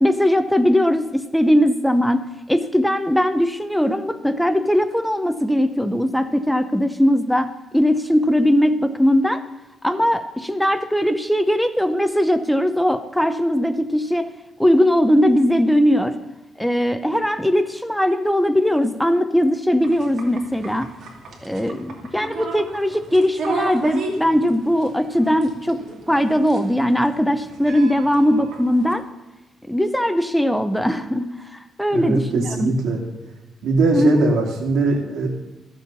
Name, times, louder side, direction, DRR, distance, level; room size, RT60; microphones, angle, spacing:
voice 1, 0.0-9.4 9.8-14.3 14.6-16.2 16.6-20.9 21.4-25.8 26.1-29.0 29.7-32.7 33.9-34.2, equal, ahead, 10 dB, 0.6 m, -19 dB
sound 1, 19.8-28.9, right 3 dB, 60° right, 2.5 m, -34 dB
voice 2, 31.9-33.0 33.6-35.3, right 3 dB, 85° right, 1 dB, 2.5 m, -21 dB
14.0 x 7.5 x 5.4 m, 1.1 s
cardioid pair, 130°, 0 cm